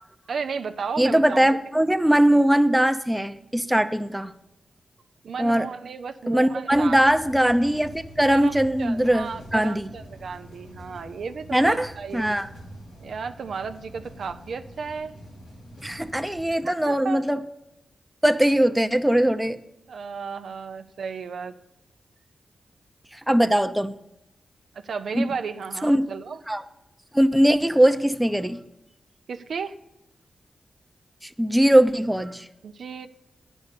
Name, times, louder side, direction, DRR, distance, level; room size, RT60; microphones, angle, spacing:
voice 1, 0.3-1.5 2.3-2.4 5.2-7.0 8.3-12.3 13.0-15.1 16.6-17.2 19.9-21.5 24.7-26.4 29.3-29.7 32.6-33.1, right 5 dB, 75° right, 8 dB, 0.5 m, -34 dB
voice 2, 1.0-4.3 5.4-5.7 6.3-7.9 8.2-9.9 11.5-11.9 12.1-12.5 15.8-17.4 18.2-19.6 23.3-23.9 25.1-25.2 25.8-26.0 26.5-26.6 27.1-28.6 31.2-32.5, right 1 dB, 10° right, 9 dB, 0.7 m, -20 dB
sound 1, 6.7-16.5, equal, 80° left, 3.7 m, -44 dB
9.3 x 5.4 x 8.2 m, 0.87 s
cardioid pair, 50°, 0 cm